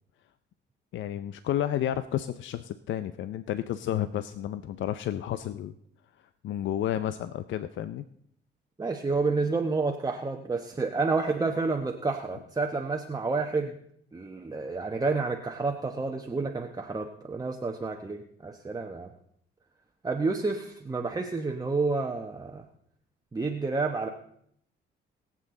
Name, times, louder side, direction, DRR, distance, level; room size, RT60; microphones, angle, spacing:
voice 1, 0.9-5.7 6.4-8.1, left 11 dB, 70° left, 13 dB, 0.6 m, -31 dB
voice 2, 8.8-13.8 14.1-19.1 20.0-22.6 23.3-24.1, right 3 dB, 20° right, 2 dB, 1.0 m, -29 dB
21.5 x 7.5 x 3.8 m, 0.70 s
cardioid pair, 90°, 20 cm